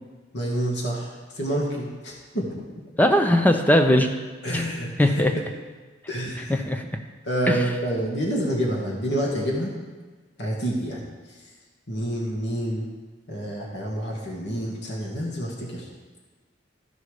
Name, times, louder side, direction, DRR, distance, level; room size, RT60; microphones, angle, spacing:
voice 1, 0.3-2.6 4.4-5.2 6.1-6.6 7.3-9.7 10.4-11.0 11.9-12.9 13.3-15.9, right 1 dB, 60° left, -2 dB, 1.8 m, -28 dB
voice 2, 3.0-4.1 4.5-4.7 5.0-5.3 6.5-6.8 7.5-7.7, left 1 dB, 10° left, 5 dB, 0.6 m, -19 dB
14.0 x 5.4 x 4.9 m, 1.3 s
head